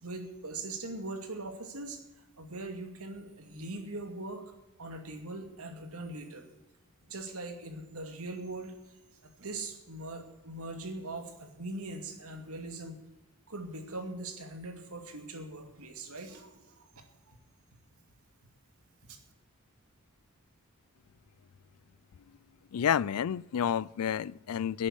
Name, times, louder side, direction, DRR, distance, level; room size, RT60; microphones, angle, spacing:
voice 1, 0.0-2.0 2.4-4.4 4.8-6.5 7.1-9.0 9.2-13.0 13.5-17.4 19.1-19.2, right 2 dB, 80° right, 5 dB, 2.4 m, -41 dB
voice 2, 22.7-24.9, left 8 dB, 80° left, 23 dB, 0.4 m, -30 dB
11.5 x 8.6 x 10.0 m, 1.0 s
head